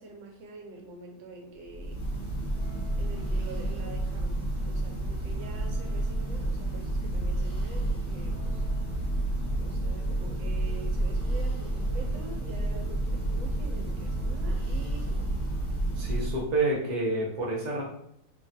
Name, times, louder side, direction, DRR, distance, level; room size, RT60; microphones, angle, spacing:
voice 1, 0.0-2.0 3.0-8.6 9.6-15.3, right 3 dB, 90° right, 1 dB, 1.4 m, -46 dB
Church bell, 1.6-16.6, right 1 dB, 20° left, 0.8 m, -30 dB
voice 2, 16.0-17.8, right 2 dB, 45° right, -4 dB, 0.5 m, -29 dB
3.1 x 2.3 x 2.6 m, 0.73 s
omnidirectional pair, 2.0 m